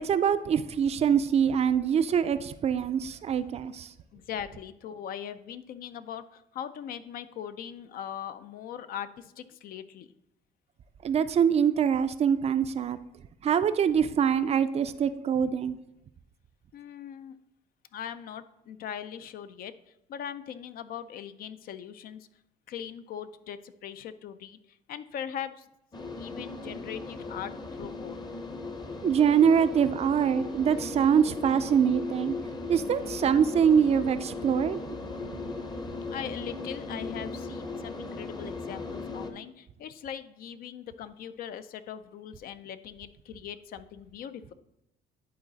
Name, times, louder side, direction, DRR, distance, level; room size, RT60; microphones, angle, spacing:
voice 1, 0.0-3.9 11.0-13.0 13.4-15.8 29.0-32.4 32.7-34.8, right 7 dB, 40° right, 12 dB, 0.4 m, -24 dB
voice 2, 4.1-10.1 16.7-17.4 17.9-19.7 20.1-22.3 22.7-25.7 26.2-28.2 36.1-44.5, left 9 dB, 60° left, 12 dB, 0.5 m, -40 dB
sound 1, 25.9-39.3, left 3 dB, 25° left, 0.8 m, -37 dB
10.0 x 4.0 x 4.0 m, 0.82 s
cardioid pair, 110°, 17 cm